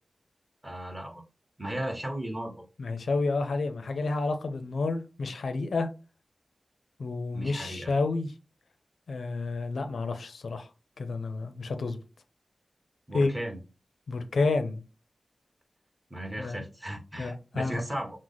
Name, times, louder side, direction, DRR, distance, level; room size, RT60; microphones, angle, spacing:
voice 1, 0.6-1.2 1.6-2.7 7.3-7.9 13.1-13.6 16.1-18.1, right 1 dB, 20° right, 1.4 m, -36 dB
voice 2, 2.8-5.9 7.0-8.3 9.1-10.7 11.0-12.0 13.1-13.3 14.1-14.8 16.4-16.6 17.2-17.8, left 3 dB, 90° left, 0.6 m, -30 dB
6.1 x 2.1 x 4.0 m
wide cardioid pair, 75°, 0 cm